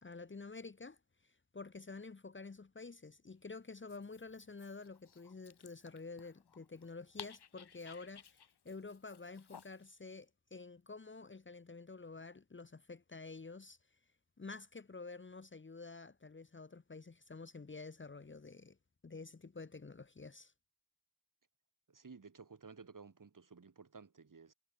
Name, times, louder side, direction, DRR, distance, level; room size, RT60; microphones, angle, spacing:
voice 1, 0.0-14.0 14.4-18.8 19.0-20.5, left 4 dB, 30° left, 1.2 m, -50 dB
Dog, 3.7-10.0, left 7 dB, 90° left, 6.5 m, -57 dB
voice 2, 21.9-24.5, right 5 dB, 55° right, 5.1 m, -55 dB
cardioid pair, 55°, 39 cm